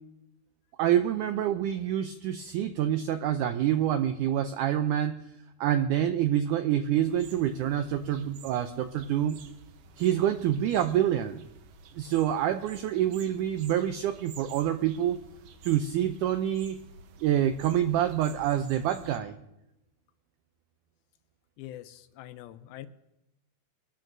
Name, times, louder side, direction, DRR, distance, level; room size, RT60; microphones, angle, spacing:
voice 1, 0.8-5.2 5.6-9.4 10.0-11.4 12.0-15.2 15.6-16.8 17.2-19.4, right 11 dB, 90° right, 9 dB, 1.8 m, -27 dB
sound 1, 7.0-19.2, right 5 dB, 70° right, 2.3 m, -51 dB
voice 2, 21.6-22.9, left 13 dB, 85° left, 11 dB, 2.5 m, -44 dB
23.5 x 12.0 x 2.6 m, 0.90 s
omnidirectional pair, 4.2 m